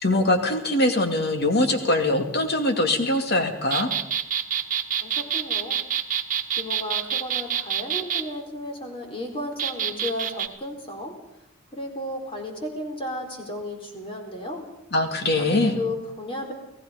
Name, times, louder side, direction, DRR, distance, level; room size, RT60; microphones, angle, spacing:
voice 1, 0.0-3.9 14.9-15.8, left 1 dB, 55° left, 5 dB, 2.6 m, -22 dB
sound 1, 3.7-8.2 9.6-10.5, right 9 dB, 45° right, 1.5 m, -26 dB
voice 2, 5.0-5.8 6.6-11.1 11.7-14.6 15.4-16.5, left 1 dB, 30° left, 2 dB, 4.3 m, -33 dB
30.0 x 17.0 x 5.2 m, 0.84 s
head